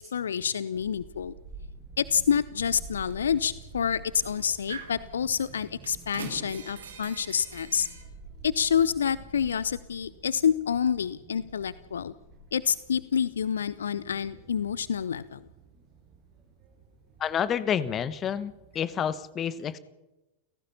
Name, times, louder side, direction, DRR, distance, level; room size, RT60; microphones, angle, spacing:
voice 1, 0.1-1.3 2.0-7.9 8.4-12.1 12.5-15.4, left 7 dB, 70° left, 19 dB, 0.6 m, -28 dB
Child speech kid speaking / Wind, 0.7-19.1, right 3 dB, 35° right, 7.8 m, -49 dB
sound 1, 3.1-3.2 4.2-5.0 5.3-8.0, right 5 dB, 65° right, 4.3 m, -43 dB
voice 2, 17.2-19.8, left 8 dB, 25° left, 16 dB, 1.4 m, -29 dB
29.5 x 17.0 x 5.7 m, 0.99 s
figure-of-eight pair, 90°, 0 cm